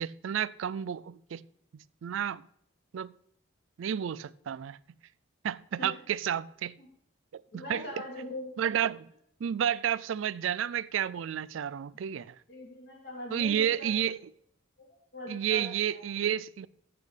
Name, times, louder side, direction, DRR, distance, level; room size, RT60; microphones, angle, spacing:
voice 1, 0.0-1.4 1.7-2.4 2.9-3.1 3.8-4.8 5.4-6.8 7.3-7.9 8.6-9.1 9.4-12.4 13.3-14.2 15.3-16.7, right 9 dB, 75° right, 0.3 m, -31 dB
voice 2, 7.5-8.5 12.5-13.9 15.1-16.0, left 1 dB, 55° left, 2.6 m, -41 dB
13.5 x 8.4 x 3.3 m
head